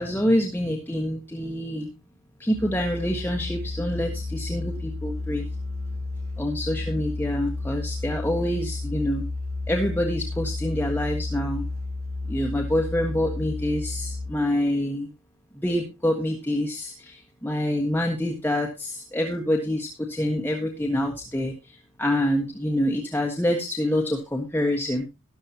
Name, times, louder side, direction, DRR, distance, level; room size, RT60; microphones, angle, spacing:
voice 1, 0.0-1.9 2.4-5.4 6.4-9.2 9.7-11.6 12.3-15.1 15.6-25.1, left 1 dB, 10° left, 1 dB, 1.4 m, -26 dB
Musical instrument, 2.5-14.5, left 2 dB, 70° right, 5.4 m, -32 dB
13.0 x 12.0 x 2.9 m, 0.25 s
head